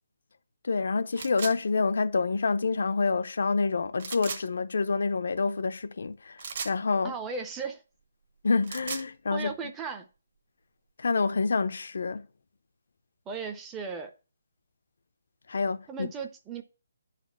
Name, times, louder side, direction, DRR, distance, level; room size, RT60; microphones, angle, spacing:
voice 1, 0.6-7.1 8.4-9.5 11.0-12.3 15.5-16.1, left 4 dB, 65° left, 0.8 m, -27 dB
sound 1, 1.2-1.6 4.0-4.4 6.4-6.8 8.5-9.1, right 5 dB, 40° right, 1.1 m, -36 dB
voice 2, 7.0-7.8 9.3-10.1 13.3-14.1 15.9-16.6, right 5 dB, 10° right, 0.7 m, -36 dB
10.0 x 4.2 x 5.9 m
hypercardioid pair, 170°, 0 cm